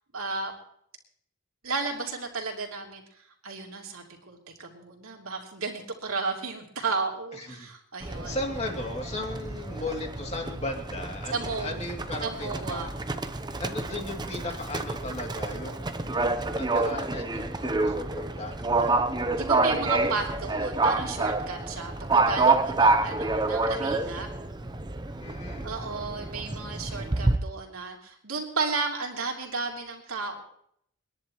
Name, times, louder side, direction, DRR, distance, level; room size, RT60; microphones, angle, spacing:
voice 1, 0.1-0.5 1.6-3.0 3.4-8.4 11.3-11.8 12.2-12.9 19.3-24.3 25.6-30.4, right 4 dB, 75° right, 1 dB, 3.4 m, -33 dB
voice 2, 7.4-7.7 8.0-12.9 13.6-15.9 16.4-19.3 25.2-25.7, left 2 dB, 30° left, 1 dB, 2.7 m, -36 dB
Livestock farm animals working animals, 8.0-27.4, right 3 dB, 20° right, 0.7 m, -28 dB
30.0 x 11.0 x 3.1 m, 0.67 s
head